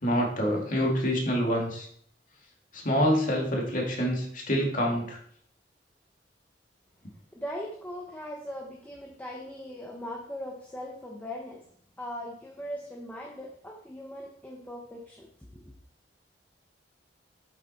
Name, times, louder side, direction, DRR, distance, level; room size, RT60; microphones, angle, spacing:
voice 1, 0.0-1.9 2.7-5.2, equal, 50° left, -1 dB, 2.5 m, -26 dB
voice 2, 7.3-11.6 12.0-15.3 15.5-15.7, equal, 10° left, -1 dB, 1.2 m, -39 dB
8.3 x 7.5 x 4.4 m, 0.63 s
head